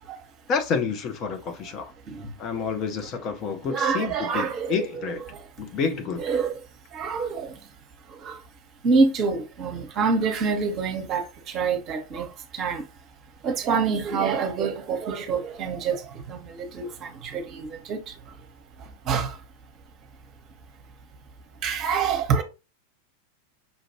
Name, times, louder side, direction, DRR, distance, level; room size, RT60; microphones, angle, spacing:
voice 1, 0.5-1.9 2.4-5.2 5.6-6.2, left 5 dB, 35° left, 0.6 m, -29 dB
voice 2, 3.7-5.2 6.2-6.5 6.9-7.5 8.2-8.4 8.8-11.2 11.5-12.3 12.5-12.8 13.4-16.0 16.3-18.0 19.1-19.3 21.6-22.4, right 5 dB, 35° right, 1.0 m, -26 dB
5.5 x 2.5 x 3.0 m
figure-of-eight pair, 90°, 0 cm